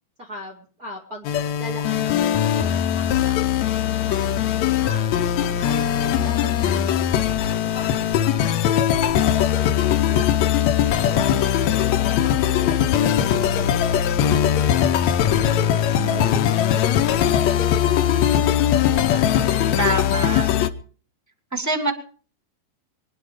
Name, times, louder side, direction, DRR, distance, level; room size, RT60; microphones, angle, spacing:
voice 1, 0.2-1.3 1.6-3.8 4.1-5.1 5.5-6.8 7.0-20.1 20.4-20.7, equal, 30° right, 0 dB, 2.2 m, -41 dB
sound 1, 1.2-20.7, left 10 dB, 70° left, 1.8 m, -20 dB
voice 2, 15.9-16.4 19.8-20.6 21.5-21.9, right 2 dB, 10° right, 3 dB, 0.9 m, -26 dB
23.5 x 10.5 x 5.0 m, 0.42 s
omnidirectional pair, 4.0 m